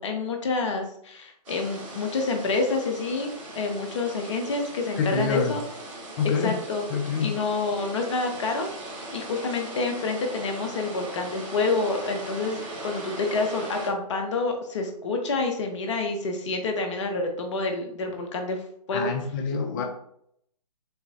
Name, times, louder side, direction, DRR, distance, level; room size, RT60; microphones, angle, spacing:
voice 1, 0.0-3.3 3.5-5.6 6.4-6.9 7.2-18.6 18.9-19.1 19.8-19.9, left 3 dB, 45° left, 4 dB, 1.0 m, -28 dB
sound 1, 1.5-13.9, right 1 dB, 50° right, 1.6 m, -39 dB
voice 2, 5.0-5.6 6.2-6.6 6.9-7.3 18.9-19.8, left 5 dB, 30° left, 4 dB, 0.6 m, -26 dB
6.6 x 2.2 x 2.9 m, 0.69 s
figure-of-eight pair, 135°, 21 cm